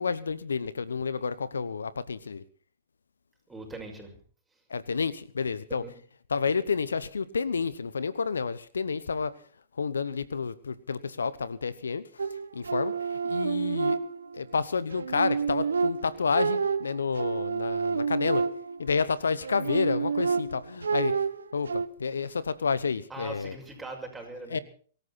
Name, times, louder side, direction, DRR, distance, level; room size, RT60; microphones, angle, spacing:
voice 1, 0.0-2.4 4.7-5.8 6.3-9.3 9.8-12.0 12.5-14.0 14.3-18.4 18.8-21.1 21.5-23.5 24.5-24.6, left 5 dB, 80° left, 18 dB, 0.9 m, -30 dB
voice 2, 3.5-4.1 5.7-6.0 22.1-22.4 23.1-24.6, right 2 dB, 10° right, 2 dB, 6.0 m, -41 dB
sound 1, 12.2-14.5 14.9-18.9 19.4-21.9, right 5 dB, 80° right, 0.9 m, -29 dB
24.0 x 13.5 x 4.2 m, 0.43 s
hypercardioid pair, 115°, 0 cm